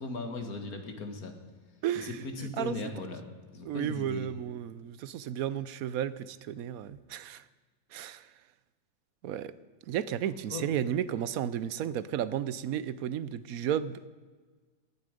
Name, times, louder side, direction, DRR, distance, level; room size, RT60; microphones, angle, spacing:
voice 1, 0.0-1.3 2.0-3.3 3.5-4.3 10.5-10.6, left 3 dB, 90° left, 5 dB, 2.2 m, -38 dB
voice 2, 1.8-2.2 2.6-2.8 3.6-7.4 7.9-8.3 9.2-9.5 9.9-14.1, right 10 dB, 80° right, 16 dB, 1.1 m, -33 dB
17.5 x 11.0 x 5.1 m, 1.4 s
omnidirectional pair, 1.5 m